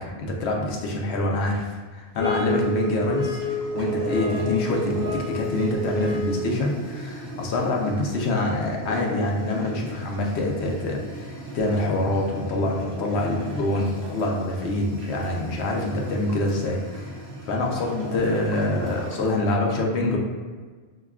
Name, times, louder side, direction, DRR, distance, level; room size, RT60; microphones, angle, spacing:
voice 1, 0.0-3.4 3.7-17.1 17.5-20.2, left 2 dB, 70° left, 0 dB, 0.9 m, -25 dB
sound 1, 2.2-6.5, equal, 20° left, 0.8 m, -29 dB
sound 2, 2.4-19.4, right 1 dB, 55° right, 1.0 m, -37 dB
5.5 x 2.2 x 2.3 m, 1.5 s
omnidirectional pair, 1.2 m